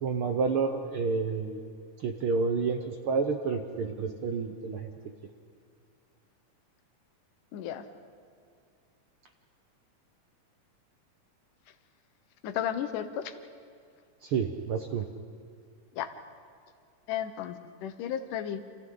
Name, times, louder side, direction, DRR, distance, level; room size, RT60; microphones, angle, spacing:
voice 1, 0.0-1.6 2.0-4.9 14.2-15.1, right 5 dB, 70° right, 5 dB, 1.3 m, -29 dB
voice 2, 7.5-7.9 12.4-13.3 16.0-16.1 17.1-18.6, left 10 dB, 80° left, 9 dB, 2.6 m, -33 dB
29.5 x 27.5 x 3.9 m, 2.3 s
omnidirectional pair, 3.6 m